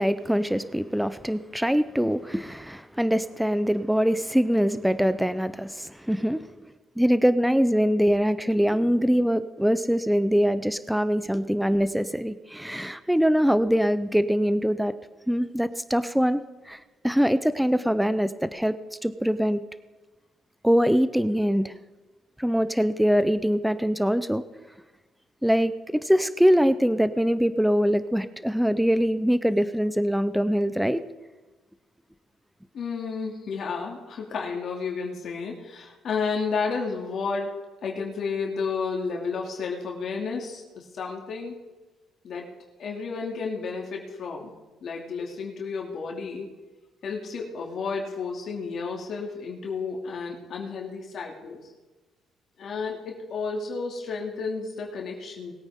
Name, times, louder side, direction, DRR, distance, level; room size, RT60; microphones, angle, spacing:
voice 1, 0.0-6.4 7.0-14.9 15.3-16.4 16.7-18.8 19.0-19.6 20.6-21.7 22.4-24.4 25.4-31.0, equal, ahead, 13 dB, 0.6 m, -23 dB
voice 2, 32.7-37.5 37.8-41.6 42.2-42.5 42.8-44.5 44.8-46.5 47.0-51.7 52.6-55.5, left 5 dB, 60° left, 0 dB, 2.6 m, -32 dB
21.0 x 9.0 x 3.7 m, 1.2 s
cardioid pair, 90°, 0 cm